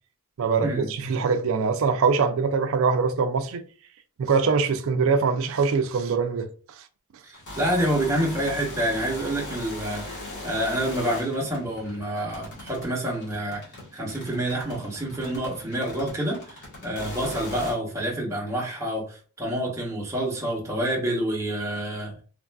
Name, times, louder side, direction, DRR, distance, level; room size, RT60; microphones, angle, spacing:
voice 1, 0.4-3.6 4.2-6.5, right 5 dB, 60° right, 0.4 m, -23 dB
voice 2, 7.2-13.6 13.9-22.1, right 1 dB, 15° right, 0.8 m, -28 dB
sound 1, 7.3-17.7, left 1 dB, 50° left, 1.2 m, -39 dB
3.2 x 2.4 x 2.2 m
head